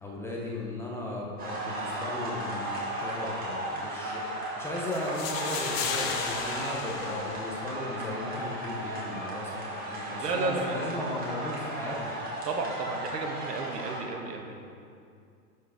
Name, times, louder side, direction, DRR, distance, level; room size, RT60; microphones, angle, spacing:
voice 1, 0.0-12.2, left 1 dB, 5° left, -4 dB, 0.6 m, -36 dB
sound 1, 1.4-14.0, right 1 dB, 20° right, 2.0 m, -35 dB
sound 2, 4.9-7.9, left 6 dB, 40° left, 1.0 m, -35 dB
voice 2, 10.2-10.9 12.4-14.6, right 3 dB, 85° right, 3 dB, 1.4 m, -32 dB
11.5 x 4.7 x 4.9 m, 2.4 s
hypercardioid pair, 130°, 47 cm